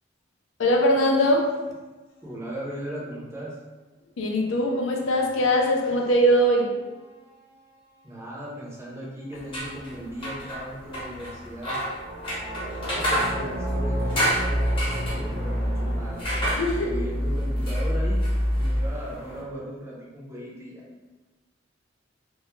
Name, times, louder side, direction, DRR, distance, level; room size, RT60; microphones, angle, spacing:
voice 1, 0.6-1.5 4.2-6.8 16.5-16.9, equal, 85° left, 1 dB, 0.4 m, -21 dB
voice 2, 2.2-3.6 8.0-11.8 12.8-16.2 16.7-18.2 18.5-20.8, equal, 15° right, -5 dB, 0.5 m, -37 dB
sound 1, 5.9-6.8 11.9-18.9, equal, 60° right, 0.6 m, -28 dB
sound 2, 9.3-19.4, equal, 30° left, 0.8 m, -32 dB
2.2 x 2.0 x 3.0 m, 1.2 s
head